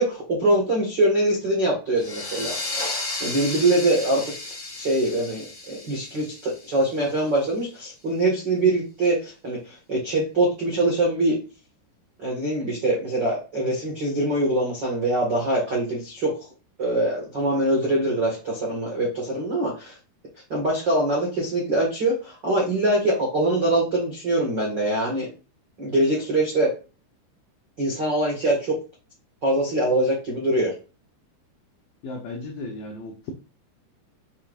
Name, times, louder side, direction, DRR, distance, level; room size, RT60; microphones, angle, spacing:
voice 1, 0.0-2.6 3.2-4.2 4.8-11.4 12.2-16.4 16.8-19.9 20.5-25.3 25.8-26.7 27.8-28.7 29.4-30.7, right 1 dB, 90° right, -4 dB, 0.9 m, -23 dB
sound 1, 2.0-7.3, left 2 dB, 60° left, 1.5 m, -33 dB
voice 2, 32.0-33.3, left 2 dB, 85° left, 1 dB, 2.0 m, -35 dB
7.1 x 5.9 x 2.5 m, 0.33 s
omnidirectional pair, 5.5 m